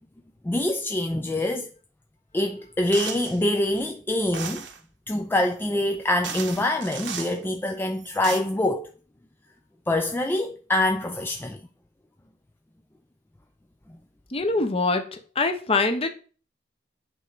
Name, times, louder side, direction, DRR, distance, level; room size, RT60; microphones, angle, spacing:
voice 1, 0.4-1.7 2.3-4.7 5.1-8.9 9.9-11.6, left 1 dB, 10° left, 0.3 m, -25 dB
sound 1, 2.9-3.4 4.3-4.8 5.8-5.9 6.2-7.4 8.0-8.4, right 7 dB, 65° right, 0.9 m, -35 dB
voice 2, 14.3-16.1, left 3 dB, 30° left, 0.8 m, -24 dB
8.1 x 3.2 x 4.9 m
head